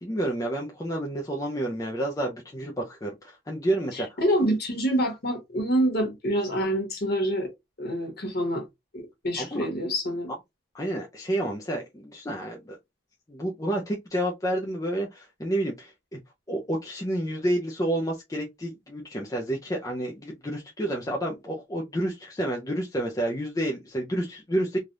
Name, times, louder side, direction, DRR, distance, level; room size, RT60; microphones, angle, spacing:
voice 1, 0.0-4.2 9.4-9.7 10.7-12.8 13.3-16.2 16.5-24.8, right 1 dB, 15° left, 0.5 m, -30 dB
voice 2, 3.9-7.5 7.8-8.6 8.9-10.3, equal, 50° left, 1.2 m, -26 dB
3.3 x 2.3 x 2.6 m
head